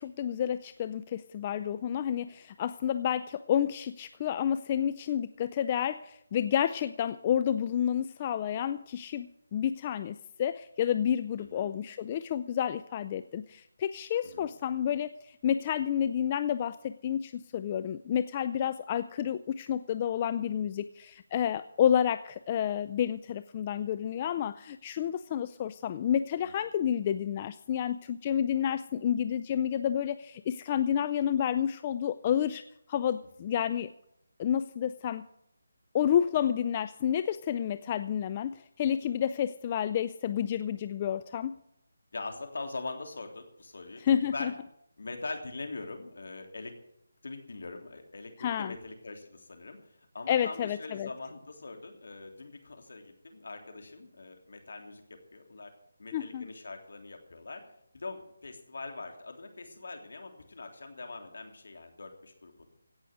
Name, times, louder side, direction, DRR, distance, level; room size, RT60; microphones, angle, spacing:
voice 1, 0.0-32.6 32.9-33.9 34.4-35.2 35.9-41.6 44.0-44.5 48.4-48.7 50.3-51.1 56.1-56.5, left 9 dB, 25° left, 12 dB, 0.4 m, -30 dB
voice 2, 11.4-11.7 14.2-14.5 26.4-26.6 42.1-44.6 45.0-46.7 47.2-55.0 55.3-55.7 56.0-57.6 57.9-62.7, left 3 dB, 65° left, 4 dB, 3.3 m, -42 dB
17.0 x 6.4 x 9.3 m, 0.76 s
figure-of-eight pair, 160°, 0 cm